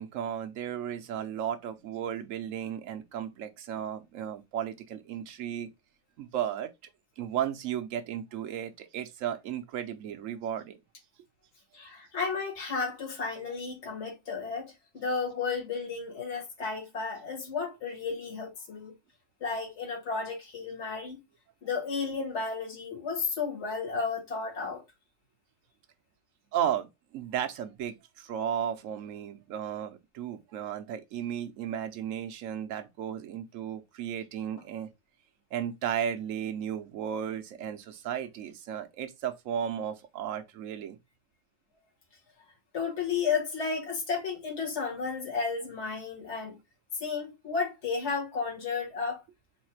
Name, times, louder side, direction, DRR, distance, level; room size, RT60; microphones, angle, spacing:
voice 1, 0.0-5.7 6.2-6.7 7.2-10.8 26.5-34.9 35.5-41.0, right 9 dB, 80° right, 1.1 m, -34 dB
voice 2, 11.7-18.9 19.4-21.2 21.6-24.8 42.7-46.6 47.0-49.2, left 5 dB, 60° left, 1.8 m, -33 dB
4.0 x 2.4 x 4.3 m
omnidirectional pair, 1.3 m